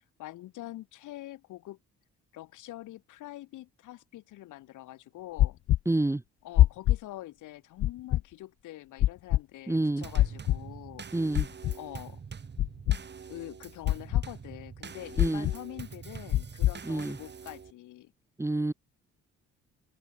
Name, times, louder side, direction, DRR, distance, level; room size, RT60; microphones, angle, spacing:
voice 1, 0.2-1.8 2.3-5.6 6.4-11.0 11.7-12.2 13.3-18.1, left 15 dB, 85° left, 1.6 m, -45 dB
sound 1, 5.4-5.8 6.6-7.0 7.8-8.2 9.0-9.4 10.1-10.6 11.3-11.7 12.6-13.0 13.8-14.2 15.2-15.6 16.3-16.7, left 14 dB, 50° left, 0.4 m, -23 dB
voice 2, 5.9-6.2 9.7-10.1 11.1-11.5 15.2-15.5 16.8-17.2 18.4-18.7, right 2 dB, 10° right, 0.8 m, -28 dB
Drum kit / Snare drum / Bass drum, 10.0-17.7, right 6 dB, 35° right, 1.7 m, -45 dB
open air
cardioid pair, 90°, 30 cm